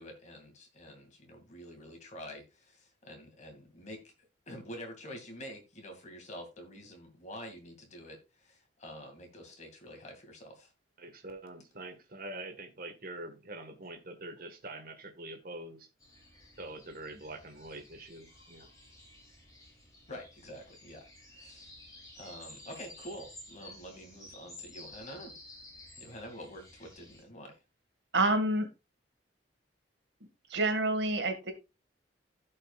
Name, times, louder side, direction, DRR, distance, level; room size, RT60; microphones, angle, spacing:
voice 1, 0.0-4.0 4.5-10.7 20.1-21.7 22.2-25.4 26.0-27.6, equal, 40° left, 2.5 m, -47 dB
voice 2, 11.0-15.9 16.6-18.7, right 2 dB, 50° right, 1.7 m, -45 dB
sound 1, 16.0-27.2, left 1 dB, 20° left, 3.9 m, -53 dB
voice 3, 28.1-28.7 30.5-31.5, right 2 dB, 70° right, 2.0 m, -27 dB
15.5 x 5.5 x 2.5 m
head